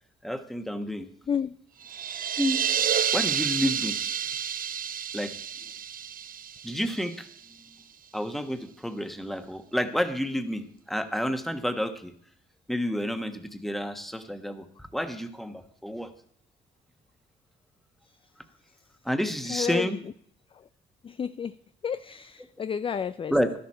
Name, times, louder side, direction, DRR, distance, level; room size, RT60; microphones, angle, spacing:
voice 1, 0.2-1.1 2.4-2.6 3.0-4.0 5.1-5.3 6.6-7.3 8.1-12.1 12.7-16.1 19.0-20.0 23.3-23.5, equal, ahead, 8 dB, 1.2 m, -30 dB
sound 1, 1.8-7.4, right 8 dB, 45° right, 0.5 m, -30 dB
voice 2, 19.5-20.0 20.5-20.6 21.0-21.5 21.8-23.3, left 7 dB, 25° left, 14 dB, 0.3 m, -31 dB
12.5 x 11.0 x 4.3 m, 0.65 s
cardioid pair, 90°, 20 cm